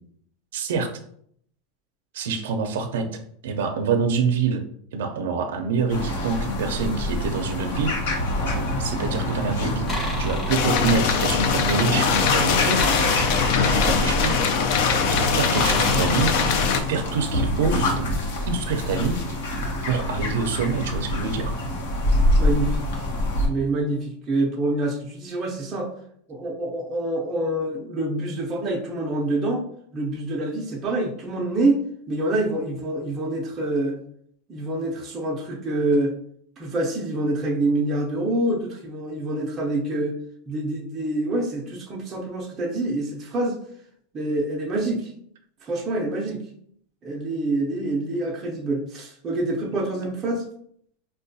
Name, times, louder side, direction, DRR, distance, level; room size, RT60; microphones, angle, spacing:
voice 1, 0.5-0.9 2.1-3.1 3.4-4.6 4.9-8.0 8.8-12.9 13.6-14.4 15.1-16.3 16.9-18.2 18.5-19.2 19.9-21.5, right 5 dB, 80° right, 6 dB, 0.4 m, -26 dB
sound 1, 5.9-23.5, left 1 dB, 75° left, 0.9 m, -26 dB
sound 2, 9.9-10.8 12.7-14.3 15.5-17.0, equal, 15° left, 0.7 m, -31 dB
sound 3, 10.5-16.8, left 6 dB, 50° left, 0.3 m, -22 dB
voice 2, 22.4-23.1 23.5-25.9 26.3-29.6 29.9-31.8 32.1-34.0 34.5-36.1 36.6-40.2 40.5-43.6 44.1-45.1 45.6-46.5 47.0-50.5, right 2 dB, 20° right, -2 dB, 0.5 m, -26 dB
4.5 x 2.2 x 2.6 m, 0.66 s
supercardioid pair, 165°, 0 cm